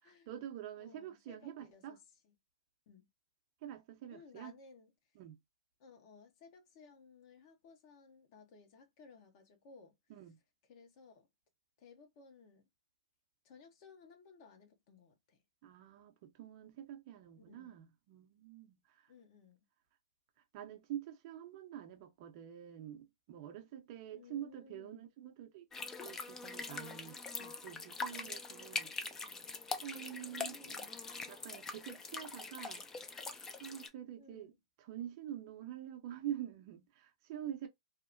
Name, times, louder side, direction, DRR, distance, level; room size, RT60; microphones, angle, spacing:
voice 1, 0.3-2.0 3.6-4.5 5.1-5.4 10.1-10.4 15.6-19.1 20.5-25.7 26.0-28.9 29.8-30.8 31.3-32.9 33.6-34.5 34.8-37.7, right 11 dB, 45° right, 0.6 m, -46 dB
voice 2, 0.8-2.3 2.9-3.1 4.1-4.9 5.8-10.0 10.6-11.3 11.8-12.7 13.4-15.4 17.3-17.7 19.1-19.6 24.1-25.0 29.9-30.9 34.2-34.6, left 5 dB, 45° left, 0.9 m, -59 dB
sound 1, 25.7-33.9, left 4 dB, 15° left, 0.5 m, -43 dB
2.8 x 2.1 x 2.5 m
hypercardioid pair, 120°, 3 cm